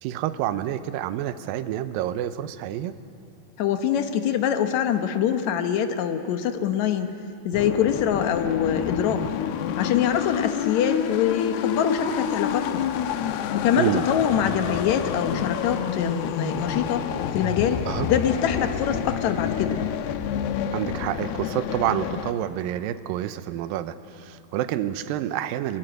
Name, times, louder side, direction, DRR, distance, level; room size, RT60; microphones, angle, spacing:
voice 1, 0.0-3.0 13.8-14.1 17.9-18.1 20.7-25.8, right 12 dB, 75° right, 11 dB, 2.3 m, -28 dB
voice 2, 3.6-7.1 7.5-9.3 9.8-12.9 13.5-17.0 17.3-19.8, left 9 dB, 70° left, 7 dB, 1.8 m, -24 dB
sound 1, 7.5-22.3, left 9 dB, 85° left, 2.8 m, -28 dB
23.0 x 22.0 x 7.9 m, 2.5 s
omnidirectional pair, 4.4 m